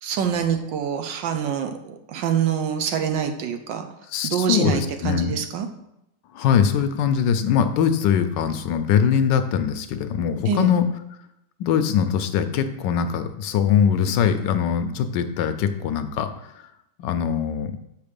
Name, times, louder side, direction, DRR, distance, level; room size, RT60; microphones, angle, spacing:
voice 1, 0.0-3.9 4.2-5.7 10.5-10.7, right 8 dB, 75° right, 6 dB, 1.4 m, -25 dB
voice 2, 4.1-5.4 6.3-10.9 11.6-16.5 17.0-17.7, left 8 dB, 75° left, 9 dB, 1.2 m, -22 dB
6.5 x 5.5 x 5.2 m, 0.85 s
omnidirectional pair, 2.1 m